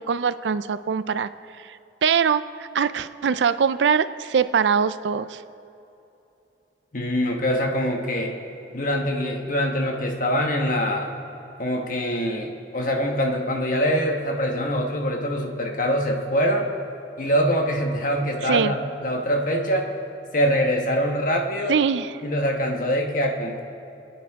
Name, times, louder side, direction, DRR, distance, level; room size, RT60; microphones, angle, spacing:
voice 1, 0.1-1.3 1.6-5.4 18.4-18.8 21.7-22.1, right 6 dB, 85° right, 14 dB, 0.4 m, -23 dB
voice 2, 6.9-8.3 8.7-11.1 11.6-16.7 17.2-19.9 20.3-21.8 22.2-23.6, equal, 50° left, 2 dB, 1.3 m, -24 dB
25.0 x 9.4 x 3.6 m, 2.8 s
head